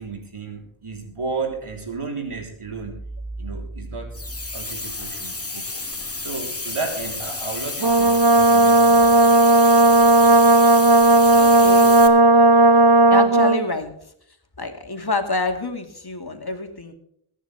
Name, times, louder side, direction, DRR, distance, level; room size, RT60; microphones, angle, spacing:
voice 1, 0.0-3.0 3.4-4.2 4.5-5.8 6.2-9.2, right 4 dB, 90° right, 2 dB, 3.7 m, -32 dB
sound 1, 4.1-12.1, left 2 dB, 30° left, 2.0 m, -31 dB
Brass instrument, 7.8-13.6, right 2 dB, 45° right, 0.9 m, -14 dB
voice 2, 11.2-11.9 13.1-13.9 14.6-16.9, left 2 dB, 50° left, 5 dB, 2.2 m, -27 dB
22.5 x 10.0 x 3.4 m, 0.70 s
wide cardioid pair, 60°, 50 cm